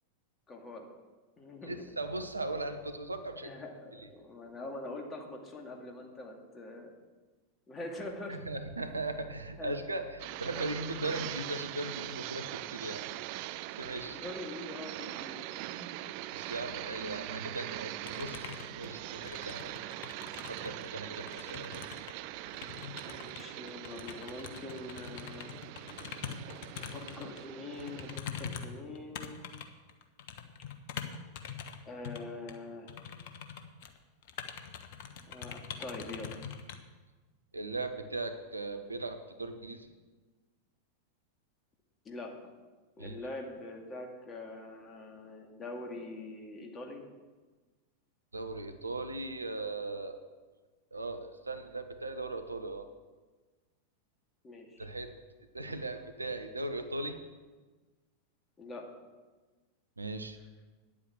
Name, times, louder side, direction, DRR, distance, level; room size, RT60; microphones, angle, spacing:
voice 1, 0.5-0.9 1.4-1.8 3.4-6.9 7.7-8.5 9.6-9.8 14.1-15.4 15.7-15.9 18.2-18.3 21.1-21.4 23.0-25.5 26.7-29.4 31.9-32.9 35.3-36.4 42.0-42.5 43.0-47.0 54.4-54.9 58.6-58.8, left 2 dB, 20° left, 2 dB, 2.3 m, -44 dB
voice 2, 1.6-3.5 3.9-4.1 8.3-13.1 13.7-14.2 16.3-19.8 20.5-21.9 37.5-39.9 43.0-43.1 48.3-50.2 50.9-52.9 54.8-55.1 55.5-57.2 60.0-60.4, right 2 dB, 80° right, 8 dB, 1.0 m, -38 dB
sound 1, 10.2-28.2, right 15 dB, 45° right, 0.4 m, -42 dB
sound 2, 18.0-20.9 21.1-27.4 27.7-31.8 32.0-32.2 32.5-32.6 32.9-34.0 34.2-36.8, left 8 dB, 50° left, 1.1 m, -43 dB
10.0 x 8.6 x 7.3 m, 1.3 s
figure-of-eight pair, 90°, 0 cm